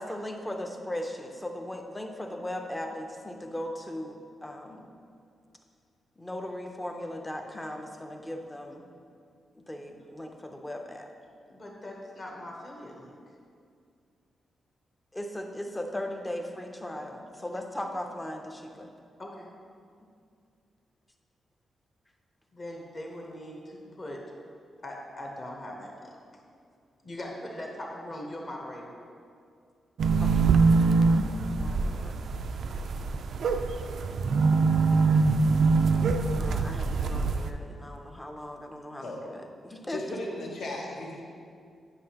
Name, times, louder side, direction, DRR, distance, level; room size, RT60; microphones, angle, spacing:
voice 1, 0.0-4.9 6.2-8.8 9.7-11.1 15.1-18.9 30.2-30.5 31.3-32.1 36.3-40.0, left 1 dB, 10° left, 3 dB, 0.5 m, -38 dB
voice 2, 11.5-13.2 19.2-19.5 22.5-24.2 24.8-26.2 27.0-28.9, left 1 dB, 30° left, -1 dB, 0.9 m, -40 dB
sound 1, 30.0-37.5, right 4 dB, 60° right, 0.3 m, -24 dB
voice 3, 39.9-41.2, left 1 dB, 70° left, -1 dB, 1.2 m, -36 dB
9.7 x 5.5 x 2.9 m, 2.3 s
wide cardioid pair, 170°, 0 cm